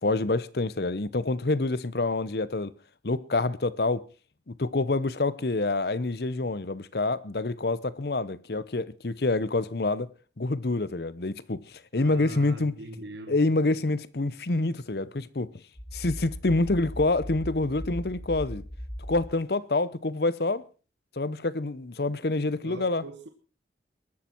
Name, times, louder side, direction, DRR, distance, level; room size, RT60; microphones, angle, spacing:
voice 1, 0.0-2.7 3.0-4.1 4.5-10.1 10.4-12.7 13.3-15.5 15.9-18.6 19.1-20.6 21.2-23.0, left 2 dB, 60° left, 0.8 m, -27 dB
voice 2, 11.9-13.4 22.6-23.3, right 1 dB, 80° right, 1.6 m, -42 dB
sound 1, 15.8-19.3, equal, 25° left, 1.4 m, -38 dB
22.0 x 12.0 x 4.5 m
head